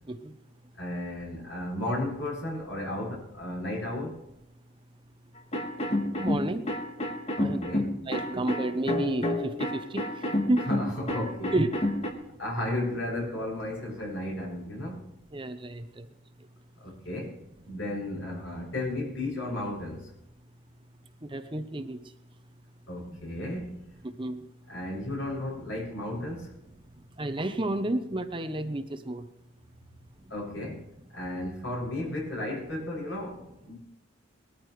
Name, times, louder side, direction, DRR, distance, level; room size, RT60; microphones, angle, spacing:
voice 1, 0.8-4.2 7.3-8.0 10.7-11.6 12.4-15.0 16.8-17.4 17.7-20.1 22.9-23.8 24.7-26.5 30.3-30.8 31.1-33.8, left 1 dB, 75° left, -2 dB, 6.9 m, -34 dB
sound 1, 5.5-12.1, left 1 dB, 30° left, 1.7 m, -29 dB
voice 2, 6.2-6.6 7.4-7.6 8.1-10.0 10.5-10.6 11.5-11.9 15.3-16.1 21.3-22.0 24.2-24.4 27.2-29.2, right 1 dB, 25° right, 8 dB, 0.8 m, -30 dB
20.5 x 14.0 x 3.2 m, 0.83 s
head